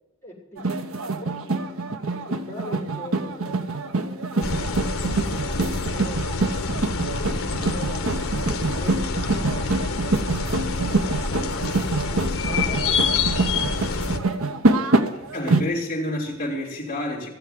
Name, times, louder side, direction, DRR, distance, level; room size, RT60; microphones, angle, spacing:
voice 1, 0.2-1.7 2.0-6.2 6.9-14.5 14.9-15.6, left 1 dB, 10° left, 4.5 m, -43 dB
sound 1, 0.6-15.6, right 2 dB, 80° right, 1.1 m, -25 dB
sound 2, 4.4-14.2, left 3 dB, 85° left, 1.4 m, -27 dB
voice 2, 15.3-17.3, left 1 dB, 30° left, 3.3 m, -28 dB
16.0 x 8.0 x 7.8 m
head